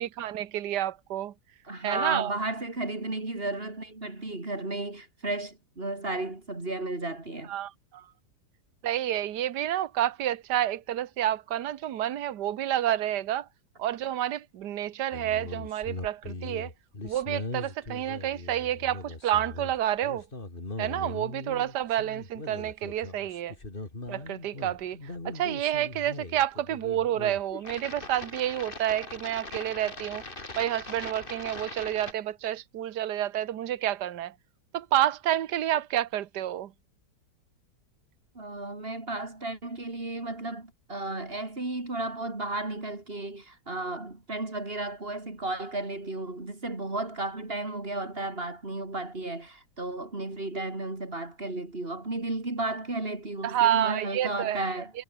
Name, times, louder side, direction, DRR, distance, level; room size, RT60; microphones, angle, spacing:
voice 1, 0.0-1.3 1.8-2.4 7.5-8.1 8.8-13.5 13.8-16.7 17.0-20.3 20.8-23.5 24.1-30.2 30.6-34.3 34.7-36.7 53.4-54.6, right 12 dB, 70° right, 1.6 m, -29 dB
voice 2, 1.6-7.5 38.4-54.9, right 2 dB, 30° right, 3.9 m, -34 dB
sound 1, 15.1-32.1, left 2 dB, 30° left, 3.3 m, -40 dB
omnidirectional pair, 1.9 m